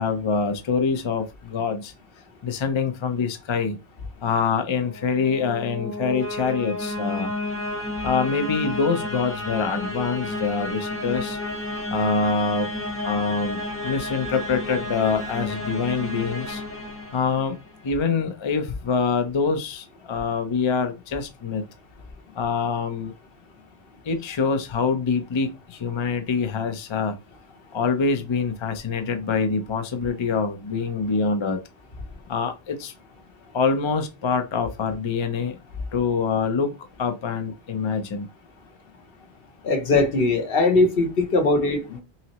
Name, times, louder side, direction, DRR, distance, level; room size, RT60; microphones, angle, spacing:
voice 1, 0.0-1.9 2.4-3.8 4.2-7.3 8.0-11.4 11.9-12.7 13.0-16.6 17.1-17.6 17.8-21.6 22.4-23.1 24.1-27.1 27.7-31.6 32.3-32.9 33.5-35.6 35.9-36.7 37.0-38.3, left 5 dB, 40° left, 0.4 m, -25 dB
sound 1, 4.8-17.8, left 1 dB, 15° left, 0.9 m, -32 dB
voice 2, 39.6-42.0, left 2 dB, 65° left, 1.0 m, -20 dB
5.5 x 2.0 x 2.9 m
omnidirectional pair, 1.1 m